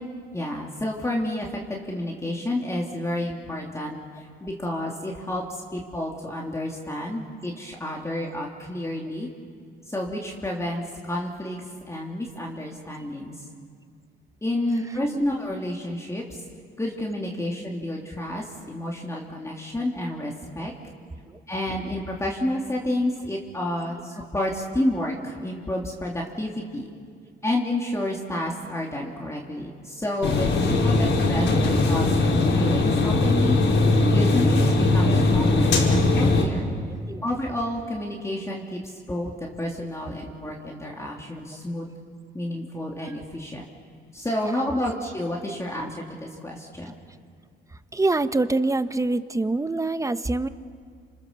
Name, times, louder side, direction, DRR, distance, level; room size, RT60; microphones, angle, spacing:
voice 1, 0.3-9.3 9.9-11.6 11.9-13.3 14.4-16.4 16.8-20.7 21.5-26.9 27.4-33.6 33.9-36.7 37.2-41.8 42.3-43.6 44.1-47.0, left 1 dB, 15° left, -2 dB, 3.3 m, -30 dB
sound 1, 30.2-36.4, left 2 dB, 70° left, 5.3 m, -20 dB
voice 2, 47.9-50.5, right 2 dB, 15° right, 12 dB, 1.0 m, -24 dB
30.0 x 27.5 x 7.0 m, 2.1 s
cardioid pair, 90°, 20 cm